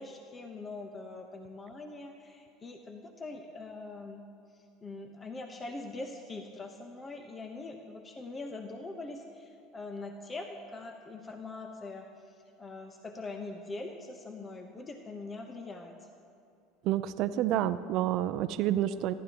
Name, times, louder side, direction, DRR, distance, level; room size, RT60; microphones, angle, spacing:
voice 1, 0.0-16.1, left 3 dB, 25° left, 4 dB, 1.1 m, -43 dB
voice 2, 16.8-19.1, right 12 dB, 60° right, 13 dB, 0.5 m, -29 dB
25.0 x 12.0 x 3.0 m, 2.5 s
hypercardioid pair, 95°, 0 cm